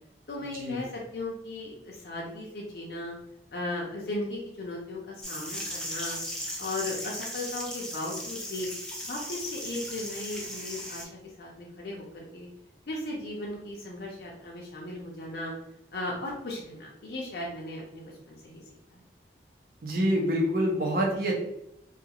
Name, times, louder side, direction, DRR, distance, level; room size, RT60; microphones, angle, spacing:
voice 1, 0.3-3.2 3.5-6.2 6.6-8.7 9.0-12.5 12.9-15.5 15.9-18.6 18.9-19.0, left 2 dB, 60° left, -3 dB, 0.5 m, -36 dB
sound 1, 5.2-11.0, equal, 5° left, 0.4 m, -37 dB
voice 2, 19.8-21.3, equal, 55° right, -1 dB, 0.7 m, -26 dB
2.4 x 2.3 x 2.9 m, 0.82 s
head